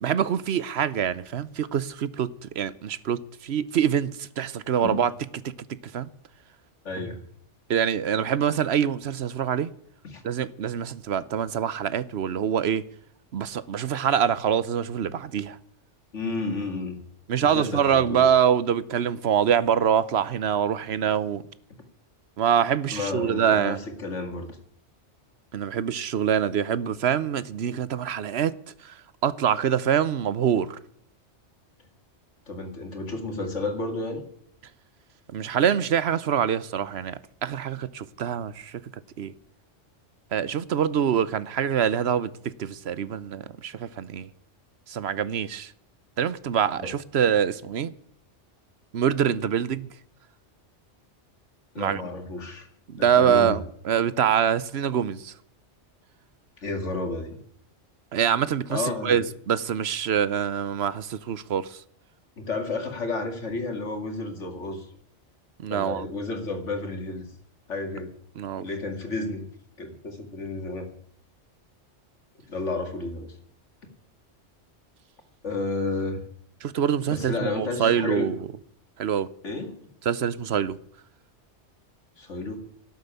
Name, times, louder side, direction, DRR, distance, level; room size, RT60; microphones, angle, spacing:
voice 1, 0.0-5.1 5.4-5.5 5.9-6.1 7.7-9.7 10.2-12.9 13.3-15.6 17.3-21.4 22.4-23.8 25.5-28.5 28.8-28.9 29.2-30.8 35.3-38.8 39.2-39.3 40.3-44.3 44.9-45.7 46.2-47.9 48.9-49.9 51.8-52.0 52.9-55.3 58.1-61.8 65.6-66.0 68.4-68.7 76.6-78.5 79.0-79.3 80.1-80.8, right 8 dB, 65° right, 1.0 m, -25 dB
voice 2, 6.8-7.2 10.0-10.2 16.1-17.0 17.4-18.2 22.9-24.5 32.5-34.2 46.8-46.9 51.7-52.7 53.0-53.6 56.6-57.4 58.7-59.3 62.4-64.9 65.7-67.3 67.7-68.1 68.6-69.4 69.8-70.9 72.5-73.3 75.4-76.2 77.1-78.3 79.4-79.7 82.2-82.6, left 3 dB, 80° left, 2.6 m, -31 dB
12.5 x 8.0 x 9.7 m
omnidirectional pair, 1.2 m